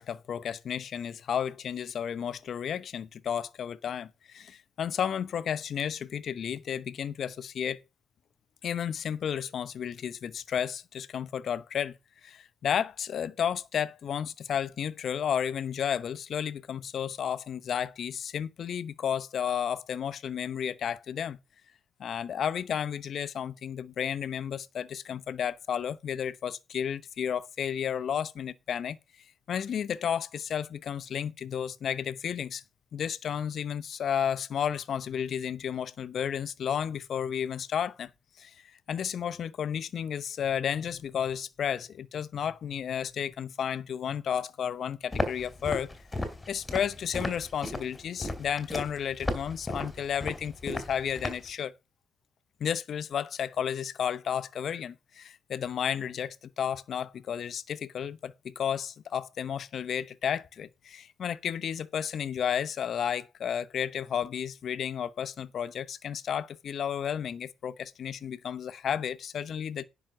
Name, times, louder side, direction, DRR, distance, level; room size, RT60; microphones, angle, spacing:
voice 1, 0.0-7.8 8.6-12.0 12.2-21.4 22.0-29.0 29.5-32.6 32.9-38.1 38.4-38.5 38.9-45.9 46.2-51.7 52.6-69.8, left 8 dB, 60° left, 0.8 m, -32 dB
Walk footsteps, 45.1-51.5, left 1 dB, 15° left, 3.0 m, -35 dB
10.0 x 6.0 x 5.8 m
cardioid pair, 90°, 0 cm